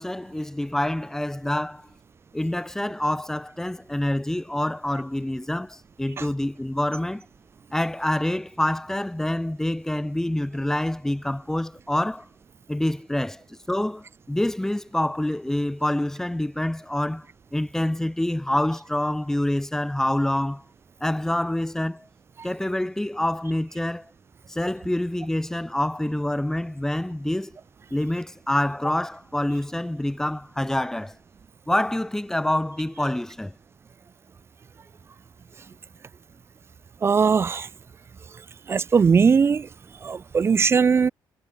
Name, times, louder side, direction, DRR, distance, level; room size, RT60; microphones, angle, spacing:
voice 1, 0.0-1.8 2.3-7.2 7.7-12.2 12.7-13.4 13.7-17.2 17.5-20.6 21.0-22.0 22.4-24.0 24.5-27.5 27.9-31.1 31.7-33.5, left 1 dB, 5° left, 1.9 m, -26 dB
voice 2, 37.0-37.7 38.7-39.7 40.0-41.1, right 6 dB, 30° right, 0.5 m, -19 dB
cardioid pair, 135°, 8 cm